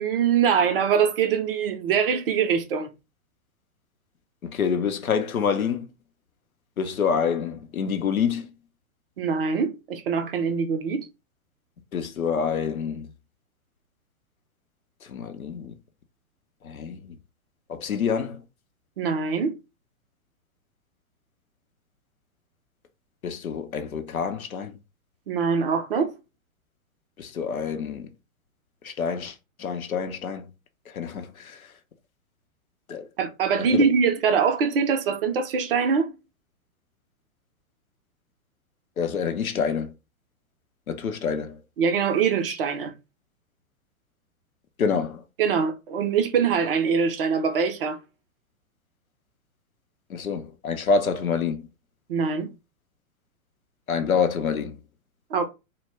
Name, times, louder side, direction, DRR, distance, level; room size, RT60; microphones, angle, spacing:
voice 1, 0.0-2.9 9.2-11.1 19.0-19.5 25.3-26.1 33.2-36.1 41.8-42.9 45.4-48.0 52.1-52.5 55.3-55.4, right 6 dB, 45° right, 0.5 m, -23 dB
voice 2, 4.4-5.9 6.8-8.5 11.9-13.1 15.1-15.7 16.6-17.1 17.7-18.4 23.2-24.7 27.2-28.1 28.8-30.5 30.9-31.6 32.9-33.1 33.7-33.8 39.0-39.9 40.9-41.6 44.8-45.2 50.1-51.7 53.9-54.8, left 6 dB, 80° left, 0.6 m, -27 dB
2.1 x 2.0 x 3.3 m
figure-of-eight pair, 110°, 42 cm